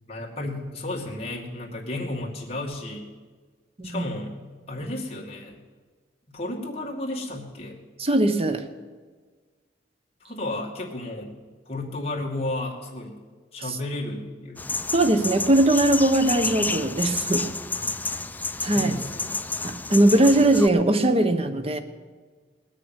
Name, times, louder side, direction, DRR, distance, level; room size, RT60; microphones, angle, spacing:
voice 1, 0.1-3.1 3.8-4.3 4.7-5.6 6.3-7.8 10.2-11.3 11.7-13.1 13.5-14.7 15.1-15.2 17.8-17.9 18.3-19.7, left 2 dB, 35° left, -3 dB, 2.3 m, -33 dB
voice 2, 8.0-8.6 14.9-17.4 18.6-19.0 19.6-21.8, right 1 dB, 35° right, 8 dB, 1.1 m, -20 dB
sound 1, 14.6-20.7, left 3 dB, 10° left, 0.4 m, -30 dB
19.5 x 6.5 x 9.1 m, 1.4 s
head